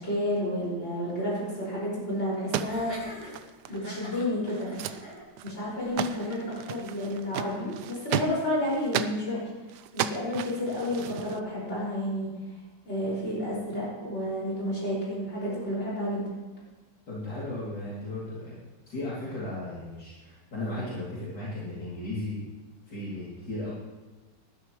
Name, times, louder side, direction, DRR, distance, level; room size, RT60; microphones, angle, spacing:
voice 1, 0.0-3.1 3.7-4.7 5.4-9.4 9.9-12.3 12.8-16.3, left 1 dB, 35° left, -7 dB, 5.8 m, -31 dB
sound 1, 2.3-3.9 4.2-4.3 4.5-5.0 5.4-5.7 6.0-9.2 9.7-11.4, right 10 dB, 75° right, 1.1 m, -34 dB
Laughter, 2.6-7.6, equal, 50° right, 5.2 m, -44 dB
voice 2, 17.1-18.6 18.9-22.5 22.9-23.7, left 1 dB, 65° left, -9 dB, 3.5 m, -35 dB
19.5 x 11.5 x 3.1 m, 1.2 s
omnidirectional pair, 1.9 m